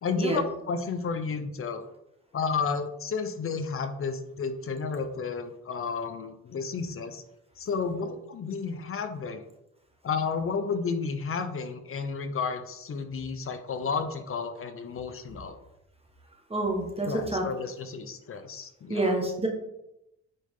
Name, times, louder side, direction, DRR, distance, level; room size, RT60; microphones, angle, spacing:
voice 1, 0.0-1.8 2.3-7.2 7.6-9.4 10.0-15.6 17.1-19.1, left 5 dB, 45° left, 9 dB, 0.8 m, -32 dB
voice 2, 16.5-17.4 18.9-19.5, right 2 dB, 20° right, 1 dB, 1.5 m, -27 dB
9.1 x 3.7 x 3.7 m, 0.86 s
cardioid pair, 90°, 30 cm